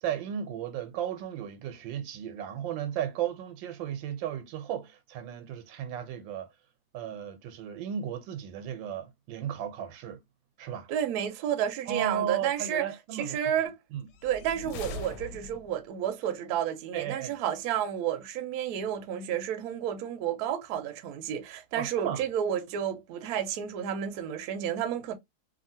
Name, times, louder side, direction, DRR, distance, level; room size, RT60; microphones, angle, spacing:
voice 1, 0.0-6.5 6.9-10.2 10.6-10.9 11.9-13.4 13.9-14.1 16.9-17.4 21.8-22.2, right 9 dB, 85° right, 1.3 m, -34 dB
voice 2, 10.9-12.9 13.1-13.7 14.2-25.1, right 9 dB, 70° right, 1.0 m, -31 dB
sound 1, 14.1-15.9, left 3 dB, 75° left, 1.1 m, -41 dB
2.7 x 2.7 x 2.6 m
omnidirectional pair, 2.0 m